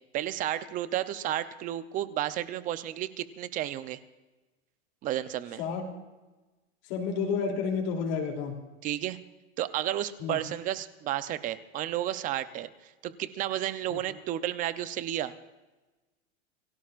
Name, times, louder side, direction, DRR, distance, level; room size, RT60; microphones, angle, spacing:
voice 1, 0.1-4.0 5.0-5.6 8.8-9.2 9.6-12.7 13.0-15.3, right 12 dB, 25° right, 13 dB, 0.6 m, -32 dB
voice 2, 6.9-8.6 10.2-10.4 13.9-14.0, left 5 dB, 45° left, -1 dB, 3.2 m, -30 dB
29.0 x 17.5 x 2.5 m, 1.2 s
supercardioid pair, 155°, 35 cm